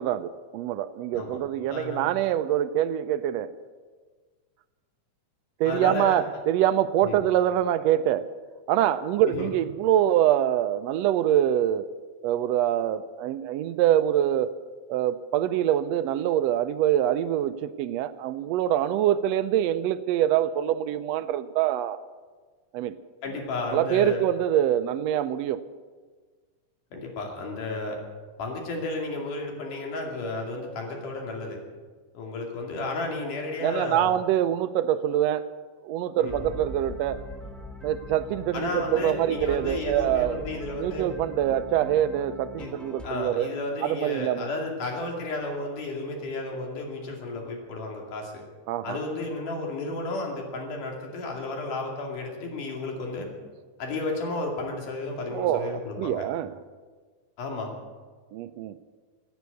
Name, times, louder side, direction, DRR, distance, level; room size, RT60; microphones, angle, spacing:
voice 1, 0.0-3.5 5.6-8.3 8.7-11.9 12.2-14.5 14.9-22.0 22.7-23.0 23.7-25.6 33.6-35.5 35.8-37.2 37.8-43.5 43.8-44.5 48.7-49.0 55.3-56.6 58.3-58.8, right 11 dB, 85° right, 11 dB, 1.5 m, -25 dB
voice 2, 1.7-2.1 5.6-6.2 7.0-7.2 9.3-9.5 23.2-24.2 26.9-28.0 28.4-31.6 32.1-34.1 36.2-36.5 38.5-41.1 42.6-42.7 43.0-48.4 48.8-53.3 53.8-56.3 57.4-57.7, left 2 dB, 85° left, 1 dB, 4.0 m, -32 dB
sound 1, 36.3-43.1, left 1 dB, ahead, 0.5 m, -41 dB
17.0 x 9.4 x 8.2 m, 1.5 s
omnidirectional pair, 3.6 m